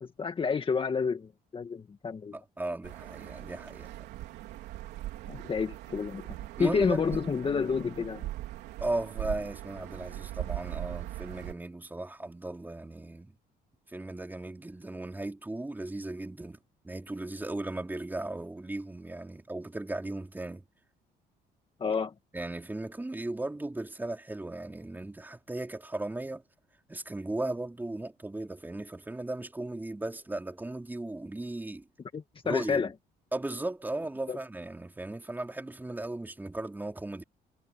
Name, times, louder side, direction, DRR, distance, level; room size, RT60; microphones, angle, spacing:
voice 1, 0.0-2.4 5.3-6.2 6.6-8.3 21.8-22.1 32.1-32.9 34.3-34.4, left 5 dB, 30° left, 1.9 m, -29 dB
voice 2, 2.3-3.9 6.6-7.0 8.8-13.3 13.9-16.6 16.8-20.6 22.3-26.4 26.9-31.9 32.4-32.9 33.3-37.2, right 2 dB, 10° right, 3.9 m, -36 dB
sound 1, 2.8-11.5, right 15 dB, 85° right, 3.9 m, -40 dB
cardioid pair, 110°, 17 cm